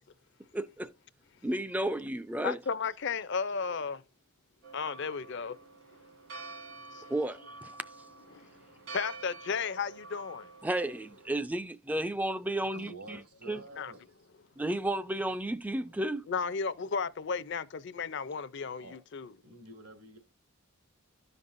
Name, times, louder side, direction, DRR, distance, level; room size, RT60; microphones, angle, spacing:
voice 1, 0.5-0.9 1.4-2.6 7.1-7.7 10.6-13.2 13.5-13.6 14.6-16.3, right 1 dB, 5° right, 0.3 m, -32 dB
voice 2, 2.4-4.0 4.7-5.6 6.9-7.2 8.3-8.5 8.9-10.5 13.8-13.9 16.3-19.3, left 5 dB, 50° left, 0.5 m, -34 dB
Church bell, 4.6-11.3, right 3 dB, 70° right, 2.0 m, -48 dB
voice 3, 12.7-14.2 18.8-19.0 19.4-20.2, right 2 dB, 85° right, 2.4 m, -49 dB
13.0 x 5.3 x 2.5 m
head